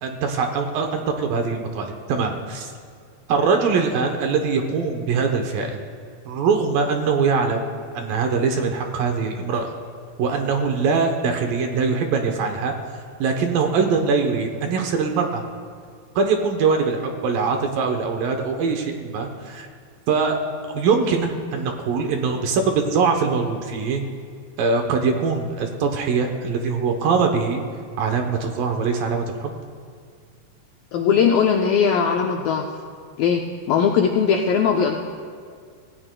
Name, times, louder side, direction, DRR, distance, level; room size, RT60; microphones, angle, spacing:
voice 1, 0.0-2.7 3.3-5.8 6.3-7.6 7.9-9.7 10.2-12.7 13.2-15.4 16.2-19.7 20.1-20.5 20.7-24.0 24.6-27.6 28.0-29.5, right 5 dB, 70° right, 4 dB, 2.2 m, -22 dB
voice 2, 30.9-32.7 33.2-35.0, left 6 dB, 80° left, 1 dB, 2.1 m, -19 dB
26.5 x 16.5 x 2.2 m, 2.1 s
omnidirectional pair, 4.9 m